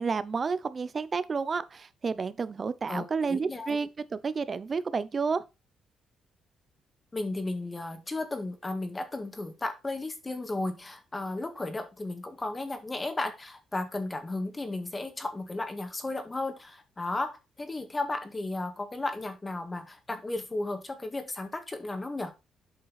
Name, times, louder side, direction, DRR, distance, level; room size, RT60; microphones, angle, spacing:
voice 1, 0.0-5.4, right 5 dB, 40° right, 0.8 m, -30 dB
voice 2, 2.9-3.8 7.1-22.3, left 2 dB, 20° left, 1.8 m, -34 dB
8.3 x 5.4 x 4.1 m
cardioid pair, 90°, 0 cm